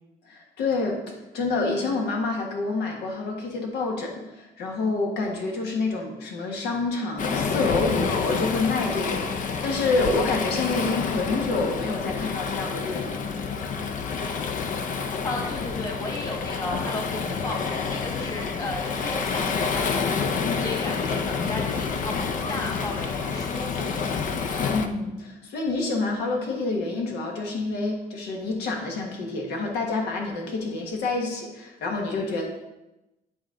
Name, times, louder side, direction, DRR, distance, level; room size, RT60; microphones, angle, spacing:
voice 1, 0.2-1.0 1.3-13.8 24.7-32.4, left 3 dB, 75° left, 0 dB, 1.6 m, -28 dB
Waves surf, 7.2-24.9, left 5 dB, 50° left, 0.7 m, -28 dB
voice 2, 15.2-23.9, left 2 dB, 20° left, 0 dB, 1.7 m, -35 dB
11.0 x 4.2 x 3.8 m, 0.96 s
cardioid pair, 110°, 17 cm